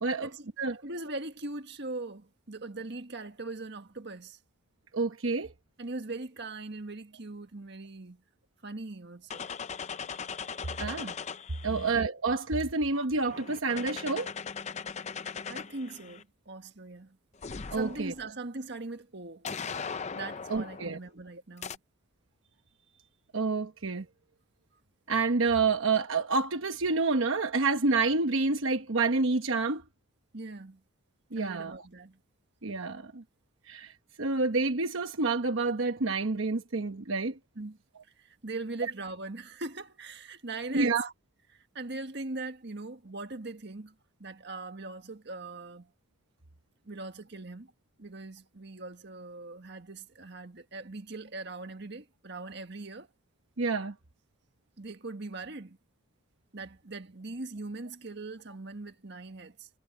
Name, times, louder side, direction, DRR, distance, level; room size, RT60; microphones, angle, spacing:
voice 1, 0.8-4.4 5.8-8.2 8.6-9.5 11.7-12.0 15.5-17.2 17.7-19.5 20.1-21.8 30.3-30.8 31.3-32.2 37.6-37.8 38.2-41.0 41.5-45.9 46.8-47.7 48.0-53.1 54.8-55.8 56.5-59.7, right 2 dB, 60° right, 1.6 m, -41 dB
voice 2, 4.9-5.5 10.8-11.1 11.6-14.3 17.7-18.1 20.5-21.0 23.3-24.1 25.1-29.8 31.3-31.8 32.6-33.2 33.7-33.9 34.2-37.4 40.7-41.1 53.6-53.9, right 3 dB, 80° right, 1.1 m, -28 dB
sound 1, 9.3-11.9 12.9-16.2 17.4-18.2 19.4-21.0 21.6-21.8, left 6 dB, 35° left, 0.6 m, -39 dB
head